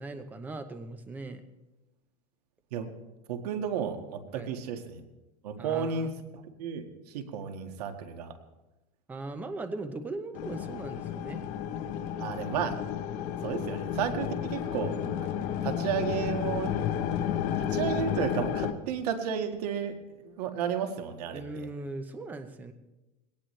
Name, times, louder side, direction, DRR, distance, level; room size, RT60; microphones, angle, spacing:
voice 1, 0.0-1.4 4.3-4.5 5.6-6.2 9.1-11.4 21.3-22.7, right 2 dB, 10° right, 8 dB, 0.7 m, -39 dB
voice 2, 3.3-5.0 5.4-6.8 7.1-8.3 12.2-12.7 13.4-15.0 15.6-16.8 17.7-19.9 20.2-21.4, right 7 dB, 75° right, 5 dB, 1.8 m, -32 dB
sound 1, 10.3-18.7, left 9 dB, 40° left, 1.1 m, -32 dB
21.0 x 18.0 x 3.3 m, 1.0 s
supercardioid pair, 170°, 20 cm